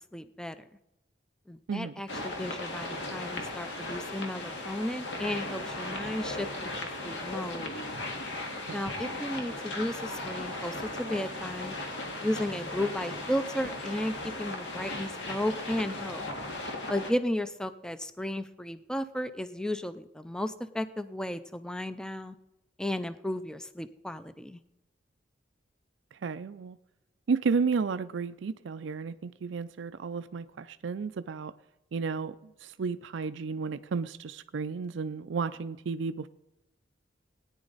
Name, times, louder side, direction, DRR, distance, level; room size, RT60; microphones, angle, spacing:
voice 1, 0.1-0.6 1.5-6.7 7.0-7.7 8.7-11.8 12.2-16.2 16.9-22.4 22.8-24.6, left 1 dB, 5° left, 12 dB, 0.4 m, -34 dB
sound 1, 2.1-17.1, left 2 dB, 75° left, 2.0 m, -37 dB
voice 2, 26.2-26.8 27.3-31.5 31.9-32.3 32.6-36.3, right 5 dB, 80° right, 12 dB, 0.4 m, -32 dB
17.5 x 9.8 x 4.0 m, 0.91 s
head